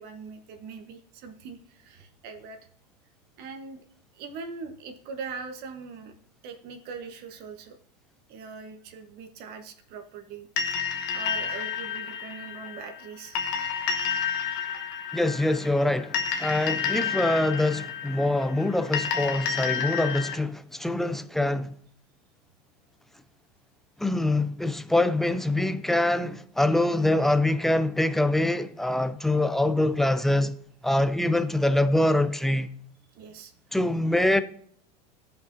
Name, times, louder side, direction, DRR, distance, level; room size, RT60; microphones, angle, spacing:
voice 1, 0.0-2.6 3.4-3.8 4.1-6.2 6.4-7.8 8.3-13.4 14.7-14.8 33.1-33.5 34.2-34.4, right 5 dB, 50° right, 1.1 m, -41 dB
sound 1, 10.6-20.4, left 7 dB, 55° left, 1.1 m, -30 dB
voice 2, 15.1-21.7 24.0-30.6 30.8-32.7 33.7-34.4, left 1 dB, ahead, 0.3 m, -24 dB
14.5 x 5.6 x 2.6 m
supercardioid pair, 125°, 21 cm